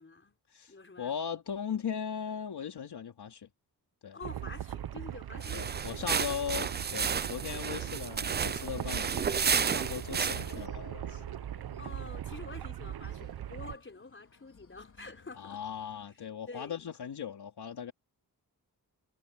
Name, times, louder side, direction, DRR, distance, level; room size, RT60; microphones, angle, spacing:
voice 1, 0.0-0.4 0.7-1.4 4.1-6.4 11.8-15.6 16.1-16.8, left 3 dB, 30° left, 6.0 m, -48 dB
voice 2, 1.0-3.5 4.0-4.2 5.5-11.2 15.4-17.9, left 7 dB, 80° left, 3.4 m, -38 dB
sound 1, 4.2-13.8, right 11 dB, 70° right, 0.8 m, -40 dB
sound 2, 5.1-16.1, left 6 dB, 50° left, 3.8 m, -54 dB
sound 3, 5.4-10.7, right 6 dB, 30° right, 0.4 m, -32 dB
wide cardioid pair, 95°, 39 cm